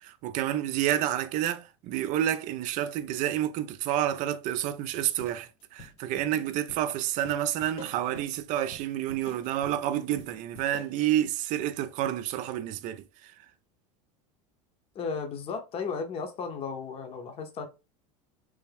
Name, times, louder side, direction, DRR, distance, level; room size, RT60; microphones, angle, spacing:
voice 1, 0.0-13.3, right 12 dB, 50° right, 0.5 m, -29 dB
sound 1, 5.2-11.0, left 2 dB, 85° left, 2.1 m, -49 dB
voice 2, 14.9-17.7, left 5 dB, 35° left, 0.9 m, -34 dB
3.5 x 3.1 x 3.4 m
supercardioid pair, 130°, 17 cm